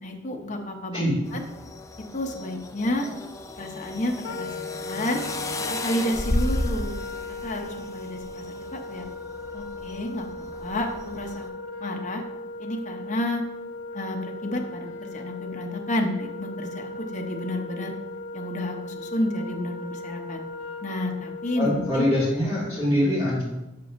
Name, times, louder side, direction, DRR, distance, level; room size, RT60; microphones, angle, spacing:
voice 1, 0.0-1.1 1.3-1.4 2.1-3.1 3.6-5.2 5.7-7.0 7.3-9.1 9.5-11.5 11.8-12.2 12.6-13.4 13.9-17.9 18.3-20.4 20.8-22.1, left 1 dB, 40° left, 2 dB, 0.8 m, -30 dB
sound 1, 1.3-11.5, left 2 dB, 15° left, 0.4 m, -34 dB
Wind instrument woodwind instrument, 4.2-22.3, left 2 dB, 70° left, 0.6 m, -38 dB
voice 2, 21.6-23.4, left 1 dB, 20° right, -10 dB, 2.1 m, -23 dB
6.8 x 6.8 x 2.6 m, 0.98 s
head